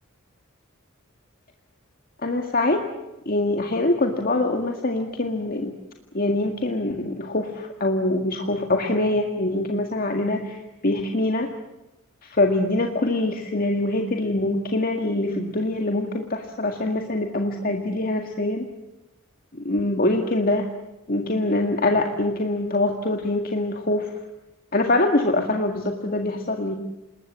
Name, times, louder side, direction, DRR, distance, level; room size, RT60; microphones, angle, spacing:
voice 1, 2.2-2.8 3.3-5.7 6.1-11.5 12.2-18.7 19.5-20.7 21.1-24.1 24.7-26.8, left 2 dB, 45° left, 3 dB, 2.0 m, -24 dB
27.5 x 20.5 x 7.5 m, 0.96 s
head